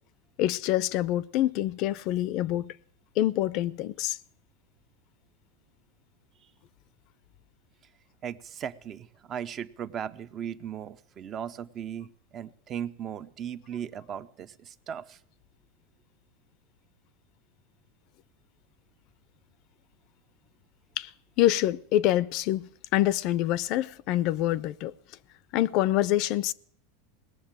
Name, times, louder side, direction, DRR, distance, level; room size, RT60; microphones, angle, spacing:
voice 1, 0.4-2.7 3.2-4.2 21.0-21.1 21.4-24.9 25.5-26.5, left 14 dB, 55° left, 0.5 m, -26 dB
voice 2, 8.2-15.2, right 9 dB, 35° right, 0.7 m, -37 dB
19.0 x 7.3 x 8.9 m
supercardioid pair, 125°, 0 cm